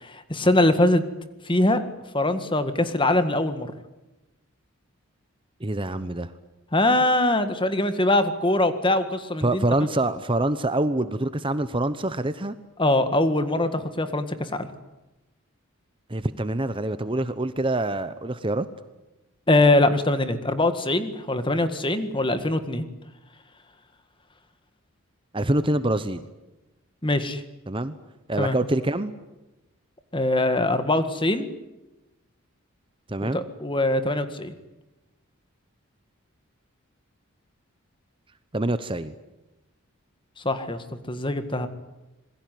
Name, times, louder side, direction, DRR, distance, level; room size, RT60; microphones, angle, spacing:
voice 1, 0.0-1.0 1.5-1.8 2.1-3.7 6.7-9.6 12.8-14.3 14.6-14.7 19.5-22.8 27.0-27.4 28.4-28.6 30.1-31.5 33.2-34.5 40.4-41.7, left 1 dB, 20° left, 10 dB, 1.7 m, -22 dB
voice 2, 5.6-6.3 9.4-12.5 16.1-18.7 25.3-26.2 27.7-27.9 28.3-29.1 33.1-33.4 38.5-39.1, right 1 dB, 25° right, 12 dB, 0.9 m, -25 dB
27.5 x 21.0 x 9.4 m, 1.0 s
head